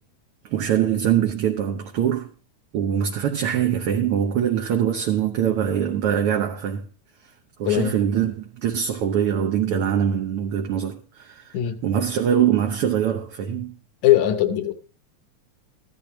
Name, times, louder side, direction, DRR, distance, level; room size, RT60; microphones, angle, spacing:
voice 1, 0.4-2.3 2.7-6.8 7.6-11.6 11.8-13.7, right 9 dB, 65° right, 1.5 m, -23 dB
voice 2, 14.0-14.7, left 12 dB, 75° left, 2.3 m, -20 dB
15.0 x 12.0 x 3.1 m
omnidirectional pair, 3.4 m